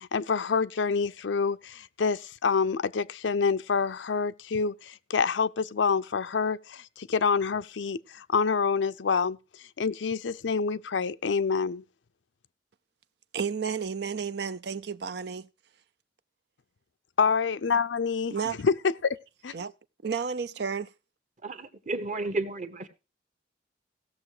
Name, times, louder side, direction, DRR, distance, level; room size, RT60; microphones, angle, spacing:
voice 1, 0.0-9.4 9.8-11.8 17.2-19.2 19.4-19.5, left 5 dB, 85° left, 0.5 m, -27 dB
voice 2, 13.3-15.5 18.3-18.6 19.5-19.7 20.0-20.9, right 6 dB, 60° right, 0.5 m, -32 dB
voice 3, 21.4-22.9, right 2 dB, 40° right, 1.3 m, -32 dB
16.5 x 6.8 x 4.9 m
head